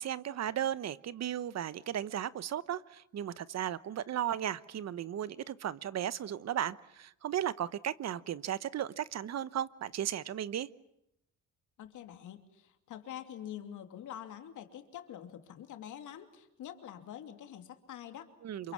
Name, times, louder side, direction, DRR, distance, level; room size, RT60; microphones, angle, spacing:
voice 1, 0.0-10.7 18.4-18.7, right 10 dB, 60° right, 17 dB, 1.1 m, -35 dB
voice 2, 11.8-18.3 18.6-18.7, left 10 dB, 80° left, 7 dB, 2.9 m, -46 dB
27.5 x 24.0 x 7.4 m, 0.80 s
cardioid pair, 90°, 30 cm